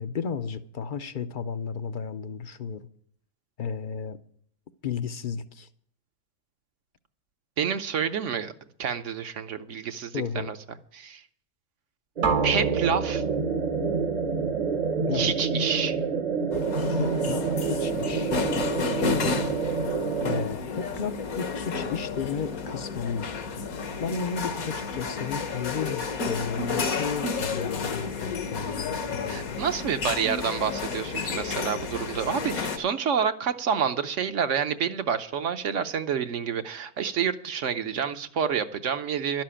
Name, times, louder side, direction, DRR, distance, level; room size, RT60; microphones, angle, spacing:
voice 1, 0.0-2.9 3.6-4.2 4.8-5.7 10.1-10.5 15.1-15.3 17.0-18.3 19.0-19.3 20.2-23.3 24.0-29.6, left 6 dB, 50° left, 0.6 m, -33 dB
voice 2, 7.6-8.5 8.8-10.6 10.9-11.2 12.4-13.2 15.1-16.0 29.3-39.4, right 7 dB, 60° right, 1.0 m, -28 dB
sound 1, 12.2-20.5, right 5 dB, 35° right, 0.7 m, -28 dB
sound 2, 12.2-16.2, right 4 dB, 80° right, 2.0 m, -32 dB
sound 3, 16.5-32.8, left 4 dB, 75° left, 1.6 m, -31 dB
12.0 x 7.5 x 10.0 m
omnidirectional pair, 1.5 m